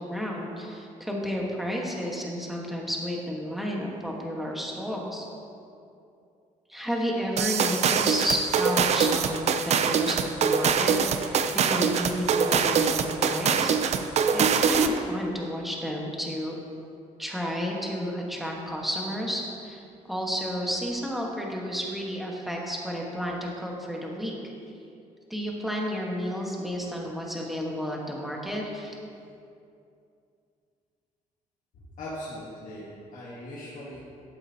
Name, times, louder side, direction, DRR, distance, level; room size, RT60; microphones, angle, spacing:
voice 1, 0.0-5.3 6.7-16.6 17.2-24.3 25.3-29.0, equal, ahead, -2 dB, 1.4 m, -32 dB
sound 1, 7.4-15.0, right 6 dB, 55° right, 0.5 m, -23 dB
voice 2, 32.0-34.0, left 1 dB, 70° left, -7 dB, 1.6 m, -39 dB
12.0 x 7.9 x 2.9 m, 2.5 s
cardioid pair, 115°, 14 cm